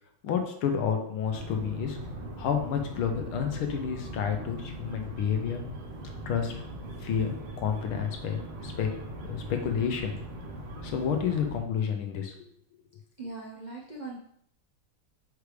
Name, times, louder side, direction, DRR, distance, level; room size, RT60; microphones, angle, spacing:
voice 1, 0.2-2.0 2.4-5.6 6.3-6.5 7.0-8.9 9.2-10.2 10.8-12.3, left 7 dB, 80° left, 4 dB, 1.8 m, -30 dB
sound 1, 1.3-11.6, right 1 dB, 80° right, 1.9 m, -40 dB
voice 2, 13.2-14.2, right 3 dB, 50° right, -4 dB, 0.5 m, -40 dB
6.6 x 4.8 x 3.3 m, 0.69 s
omnidirectional pair, 2.3 m